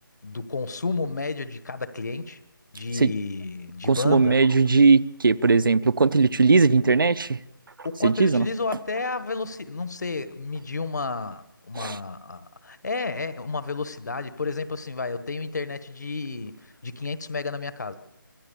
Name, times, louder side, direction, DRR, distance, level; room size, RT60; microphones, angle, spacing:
voice 1, 0.2-2.4 2.7-4.4 7.8-18.0, left 3 dB, 50° left, 13 dB, 1.3 m, -31 dB
voice 2, 3.9-7.4 8.0-8.5 11.8-12.0, right 4 dB, 70° right, 18 dB, 0.7 m, -19 dB
25.5 x 15.0 x 7.0 m, 0.91 s
figure-of-eight pair, 180°, 12 cm